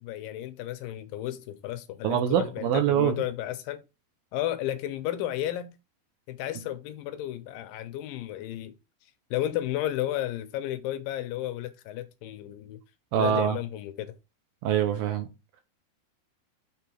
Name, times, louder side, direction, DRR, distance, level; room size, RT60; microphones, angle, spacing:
voice 1, 0.0-3.8 4.3-5.7 6.3-8.7 9.3-12.8 13.1-14.1, left 13 dB, 85° left, 2.0 m, -33 dB
voice 2, 2.0-3.2 13.1-13.6 14.6-15.3, right 9 dB, 70° right, 2.5 m, -24 dB
7.1 x 3.5 x 4.5 m
omnidirectional pair, 4.8 m